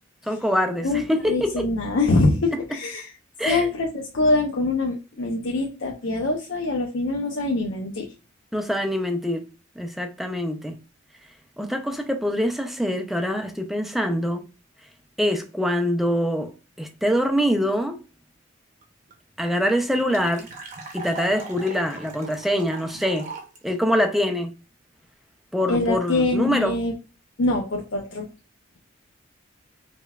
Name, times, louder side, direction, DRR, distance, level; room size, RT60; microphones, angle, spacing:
voice 1, 0.2-1.7 3.4-3.7 8.5-9.5 9.8-10.7 11.6-14.4 15.2-18.0 19.4-20.5 20.9-23.3 23.6-24.5 25.5-26.8, equal, ahead, 0.4 m, -24 dB
voice 2, 0.8-3.1 3.5-8.1 25.7-26.9 27.4-28.3, left 2 dB, 70° left, 0.6 m, -24 dB
sound 1, 18.8-18.9 19.1-19.2 19.5-23.6, right 4 dB, 40° right, 0.8 m, -39 dB
5.0 x 2.2 x 2.3 m
head